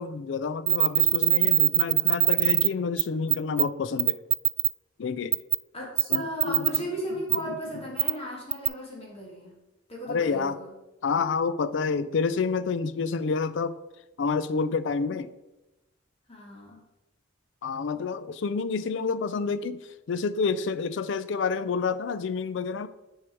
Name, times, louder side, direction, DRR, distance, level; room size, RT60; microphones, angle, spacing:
voice 1, 0.0-4.2 5.0-5.3 6.1-6.7 7.5-7.6 10.1-10.6 11.0-13.8 14.2-15.3 17.6-19.8 20.1-22.9, left 5 dB, 65° left, 14 dB, 0.4 m, -28 dB
sound 1, 0.7-2.7 3.0-3.1 3.3-3.6 4.0-4.7 5.3-5.6 6.0-6.8 7.3-7.4 8.0-8.1 8.5-8.7, right 24 dB, 80° right, 0.3 m, -21 dB
voice 2, 5.7-9.5 9.9-10.7 16.3-16.8, equal, 30° left, -3 dB, 1.8 m, -36 dB
6.1 x 4.8 x 4.5 m, 0.99 s
head